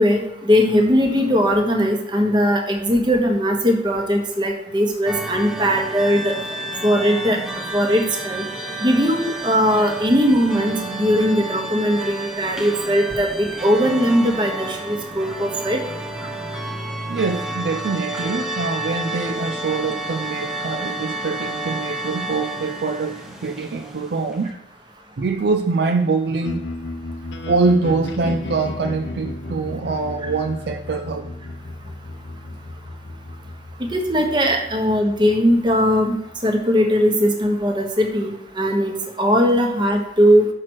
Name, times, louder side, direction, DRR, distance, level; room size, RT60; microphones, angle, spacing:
voice 1, 0.0-6.4 6.8-7.4 7.7-8.4 8.8-15.8 33.9-36.1 36.4-40.5, equal, 25° right, 1.1 m, -19 dB
sound 1, 5.1-24.5, right 2 dB, 5° right, 0.8 m, -31 dB
voice 2, 17.0-24.5 25.2-26.6 27.5-31.3, right 4 dB, 65° right, 0.4 m, -24 dB
sound 2, 26.4-36.5, left 2 dB, 90° left, 0.8 m, -34 dB
6.0 x 4.5 x 6.2 m
head